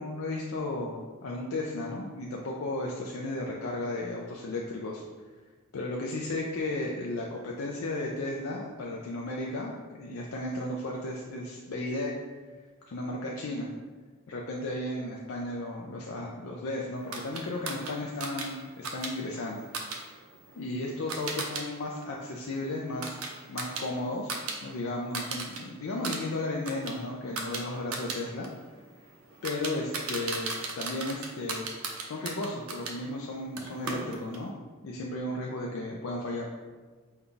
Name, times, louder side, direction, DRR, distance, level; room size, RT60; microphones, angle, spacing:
voice 1, 0.0-5.0 5.7-12.2 12.8-13.7 14.3-19.7 20.5-23.2 23.5-24.3 24.6-28.5 29.4-30.5 30.8-31.7 32.0-34.5 34.8-36.5, left 2 dB, 75° left, -2 dB, 0.4 m, -34 dB
sound 1, 17.1-21.6 22.0-24.6 24.9-25.6 25.9-33.0 33.6-34.5, right 3 dB, 85° right, 0.6 m, -37 dB
5.3 x 2.3 x 3.7 m, 1.4 s
head